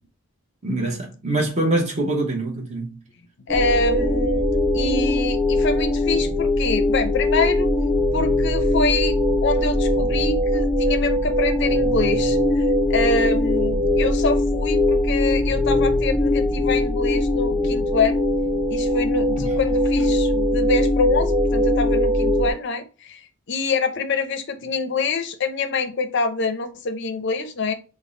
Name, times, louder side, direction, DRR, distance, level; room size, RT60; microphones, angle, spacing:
voice 1, 0.6-3.0 19.4-19.5, right 2 dB, 30° right, 0.8 m, -24 dB
voice 2, 3.5-4.4 4.7-7.7 8.1-9.1 9.4-18.2 18.7-23.2 23.5-27.7, left 3 dB, 55° left, 0.5 m, -25 dB
sound 1, 3.5-22.5, left 1 dB, 5° right, 0.5 m, -21 dB
3.5 x 2.1 x 3.7 m
head